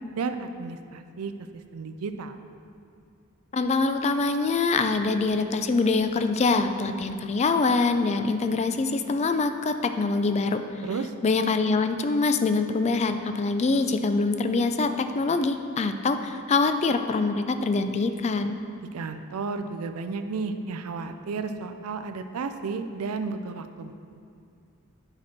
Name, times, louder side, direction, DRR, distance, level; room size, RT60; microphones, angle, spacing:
voice 1, 0.2-2.4 10.8-11.1 18.9-23.9, right 4 dB, 85° right, 8 dB, 0.4 m, -33 dB
voice 2, 3.5-10.6 11.2-18.6, left 3 dB, 30° left, 8 dB, 0.4 m, -24 dB
8.8 x 6.0 x 4.3 m, 2.4 s
head